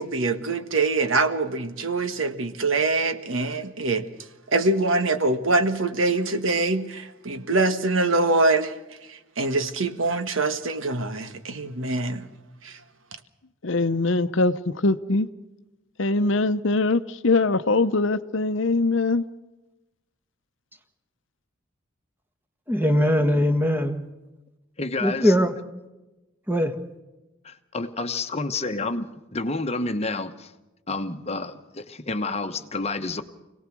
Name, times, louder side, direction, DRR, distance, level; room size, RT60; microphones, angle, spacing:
voice 1, 0.0-4.1 4.5-8.7 9.1-12.3 12.6-12.8, right 3 dB, 70° right, 1.6 m, -24 dB
voice 2, 13.6-15.3 16.0-19.3, left 3 dB, 65° left, 0.8 m, -22 dB
voice 3, 22.7-24.0 25.0-25.5 26.5-26.8, equal, 10° right, 1.6 m, -21 dB
voice 4, 24.8-25.3 27.4-30.5 30.9-33.2, left 3 dB, 30° left, 1.1 m, -29 dB
26.5 x 18.0 x 6.1 m
head